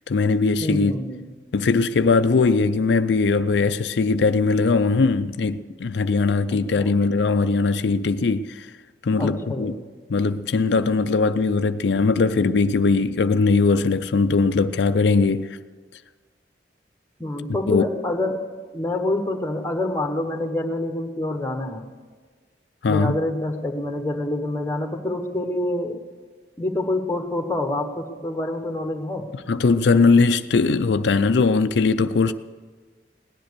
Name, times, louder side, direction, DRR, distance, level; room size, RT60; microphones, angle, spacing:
voice 1, 0.1-0.9 1.5-8.7 9.0-9.7 10.1-15.5 17.7-17.8 22.8-23.2 29.5-32.3, left 4 dB, 85° left, 0.5 m, -20 dB
voice 2, 0.6-1.2 6.8-7.0 9.2-9.8 17.2-18.4 18.7-21.9 22.8-26.0 26.6-29.3, left 1 dB, 15° left, 1.2 m, -27 dB
17.0 x 10.5 x 6.8 m
head